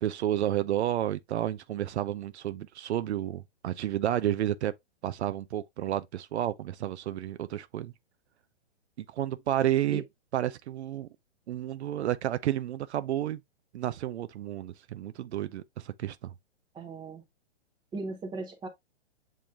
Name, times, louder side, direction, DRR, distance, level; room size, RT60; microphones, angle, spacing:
voice 1, 0.0-4.7 5.0-7.9 9.1-10.0 10.3-11.1 11.5-13.4 13.7-16.3, right 12 dB, 70° right, 0.5 m, -31 dB
voice 2, 16.7-17.2 17.9-18.7, right 3 dB, 15° right, 0.8 m, -37 dB
7.2 x 3.1 x 2.3 m
hypercardioid pair, 140°, 34 cm